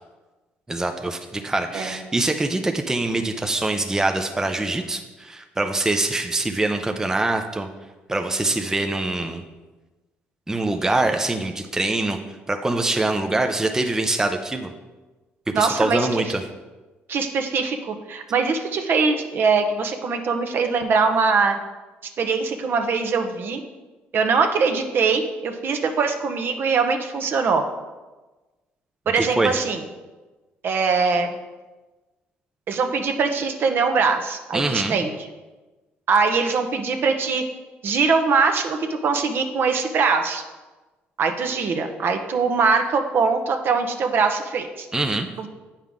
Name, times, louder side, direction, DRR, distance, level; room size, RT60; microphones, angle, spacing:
voice 1, 0.7-7.7 8.1-9.4 10.5-12.2 12.5-14.7 15.5-16.5 29.1-29.6 34.5-35.0 44.9-45.3, right 2 dB, 10° right, 5 dB, 0.6 m, -24 dB
voice 2, 15.5-16.1 17.1-21.6 22.2-23.6 24.1-27.6 29.1-29.8 30.6-31.3 32.7-35.1 36.1-37.4 37.8-40.4 41.2-44.9 45.4-45.5, right 5 dB, 55° right, 6 dB, 0.8 m, -22 dB
8.4 x 5.7 x 3.6 m, 1.2 s
cardioid pair, 90°, 4 cm